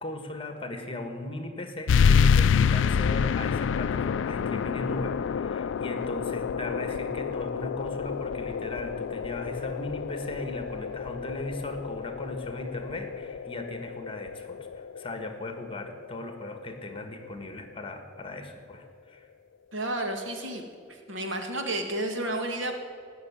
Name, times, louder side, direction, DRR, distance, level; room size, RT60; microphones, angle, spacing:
voice 1, 0.0-19.3, left 2 dB, 30° left, 7 dB, 1.5 m, -37 dB
sound 1, 1.9-17.0, left 6 dB, 70° left, 0.3 m, -28 dB
voice 2, 19.7-20.6 20.9-22.7, right 1 dB, 75° right, 4 dB, 1.9 m, -31 dB
17.5 x 6.8 x 9.7 m, 2.2 s
head